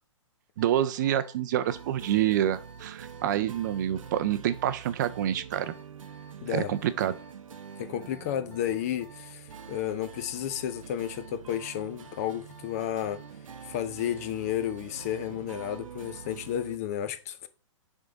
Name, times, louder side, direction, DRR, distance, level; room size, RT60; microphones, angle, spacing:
Alarm, 0.6-16.4, equal, 10° left, 1.1 m, -54 dB
voice 1, 0.6-5.7 6.5-7.1, right 11 dB, 35° right, 0.5 m, -27 dB
sound 1, 1.7-16.8, right 7 dB, 90° right, 0.7 m, -46 dB
voice 2, 6.4-6.7 7.8-13.2 13.6-17.5, left 10 dB, 30° left, 0.4 m, -32 dB
7.1 x 3.6 x 3.9 m
hypercardioid pair, 155°, 17 cm